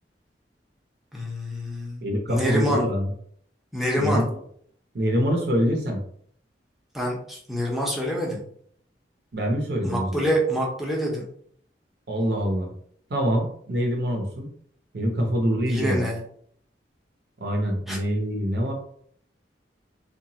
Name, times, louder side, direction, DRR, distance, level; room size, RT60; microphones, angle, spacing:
voice 1, 1.1-2.0 2.3-2.8 3.7-4.2 6.9-8.4 9.8-11.2 15.7-16.2 17.9-18.0, equal, ahead, -3 dB, 0.6 m, -26 dB
voice 2, 2.0-3.1 4.0-4.2 4.9-6.0 9.3-10.3 12.1-12.7 13.1-14.5 14.9-16.1 17.4-18.7, equal, 60° right, 1 dB, 0.6 m, -25 dB
2.8 x 2.3 x 2.8 m, 0.62 s
head